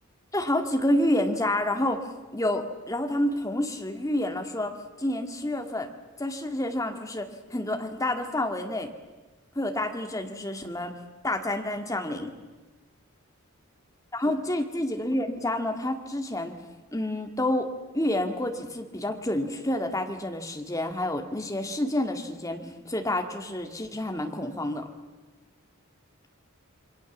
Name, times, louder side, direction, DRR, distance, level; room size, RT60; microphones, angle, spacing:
voice 1, 0.3-5.9 6.2-8.9 9.5-11.0 11.2-12.3 14.1-16.5 16.9-24.9, left 1 dB, 15° left, 4 dB, 2.0 m, -29 dB
28.0 x 23.0 x 7.3 m, 1.2 s
head